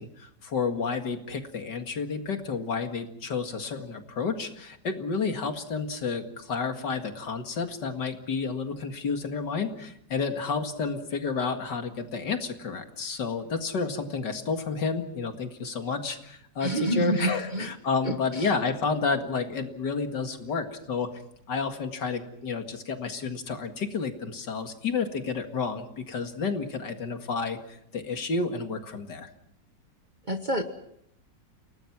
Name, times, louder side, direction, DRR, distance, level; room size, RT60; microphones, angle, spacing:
voice 1, 0.0-21.1 21.5-29.3, left 5 dB, 65° left, 6 dB, 2.6 m, -30 dB
voice 2, 16.6-17.7 18.0-18.5 30.3-30.6, right 1 dB, 30° right, 6 dB, 1.1 m, -28 dB
29.5 x 19.0 x 6.0 m, 0.73 s
omnidirectional pair, 2.0 m